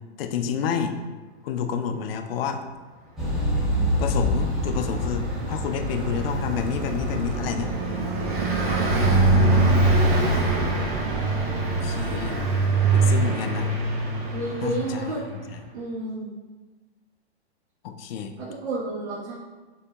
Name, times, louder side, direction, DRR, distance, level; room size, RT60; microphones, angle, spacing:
voice 1, 0.2-1.0 1.4-2.6 4.0-7.7 8.9-9.9 11.7-12.4 12.9-13.7 14.6-15.6 17.8-18.3, left 7 dB, 60° left, 6 dB, 0.5 m, -30 dB
sound 1, 3.2-9.0, left 1 dB, ahead, 0.7 m, -28 dB
Car passing by, 4.2-15.2, right 2 dB, 35° right, 1.1 m, -23 dB
voice 2, 14.3-15.2 15.7-16.3 18.4-19.3, right 2 dB, 80° right, -8 dB, 1.3 m, -30 dB
6.8 x 2.7 x 2.3 m, 1.3 s
hypercardioid pair, 150°, 34 cm